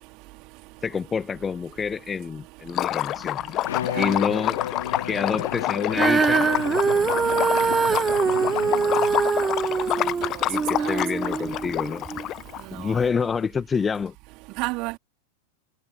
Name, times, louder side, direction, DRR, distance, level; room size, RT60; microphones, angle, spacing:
voice 1, 0.8-3.4 3.9-4.6 5.0-6.5 10.5-12.1 12.7-14.1, left 6 dB, 15° left, 1.3 m, -27 dB
Liquid, 2.7-12.6, left 14 dB, 35° left, 0.9 m, -28 dB
Bowed string instrument, 3.6-9.3, left 10 dB, 60° left, 1.0 m, -33 dB
Female singing, 5.9-12.3 13.0-13.1, right 5 dB, 15° right, 0.4 m, -23 dB
voice 2, 10.0-10.5 10.8-11.0 12.7-12.9 14.6-15.0, right 25 dB, 40° right, 3.8 m, -32 dB
figure-of-eight pair, 90°, 0 cm